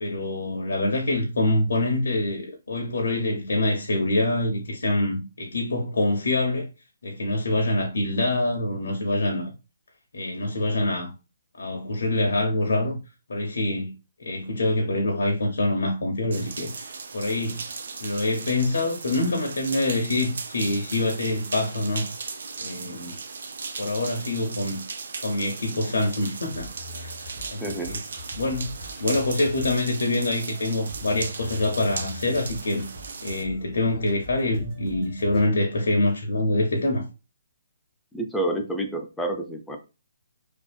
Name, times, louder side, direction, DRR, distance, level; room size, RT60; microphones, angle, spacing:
voice 1, 0.0-6.7 7.0-9.5 10.1-11.1 11.5-13.0 13.3-13.9 14.2-17.6 18.0-22.1 22.6-23.2 23.8-24.8 25.2-26.7 27.0-28.0 28.4-32.9 33.2-37.0, left 2 dB, 75° left, 0.6 m, -25 dB
sound 1, 16.3-33.4, right 4 dB, 65° right, 0.4 m, -37 dB
sound 2, 26.5-35.5, left 1 dB, 10° right, 1.3 m, -43 dB
voice 2, 27.6-28.0 38.1-39.8, right 1 dB, 5° left, 0.4 m, -29 dB
2.5 x 2.3 x 2.2 m
hypercardioid pair, 155°, 0 cm